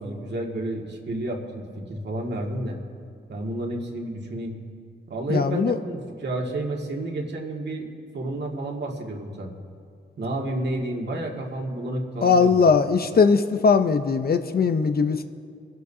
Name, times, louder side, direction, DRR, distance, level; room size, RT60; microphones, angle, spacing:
voice 1, 0.0-2.8 3.3-4.5 5.1-7.9 8.1-9.5 10.2-12.6, right 1 dB, 55° right, 0 dB, 2.1 m, -30 dB
voice 2, 5.3-5.8 12.2-15.2, left 5 dB, 50° left, 9 dB, 0.7 m, -20 dB
23.5 x 11.5 x 2.8 m, 2.3 s
cardioid pair, 60°, 20 cm